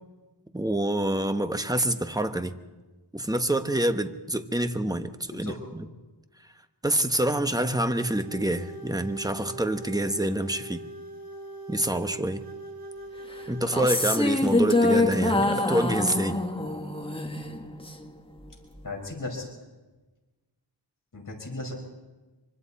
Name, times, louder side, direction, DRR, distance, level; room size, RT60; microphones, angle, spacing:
voice 1, 0.5-2.6 3.1-5.9 6.8-10.8 11.7-12.4 13.5-16.4, right 1 dB, 10° right, 8 dB, 1.2 m, -27 dB
sound 1, 8.0-16.4, right 2 dB, 50° right, 5.4 m, -42 dB
sound 2, 13.6-18.1, left 2 dB, 10° left, 1.7 m, -25 dB
voice 2, 18.8-19.4 21.1-21.7, left 2 dB, 45° left, 0 dB, 5.6 m, -36 dB
25.0 x 25.0 x 4.3 m, 1.2 s
wide cardioid pair, 80°, 44 cm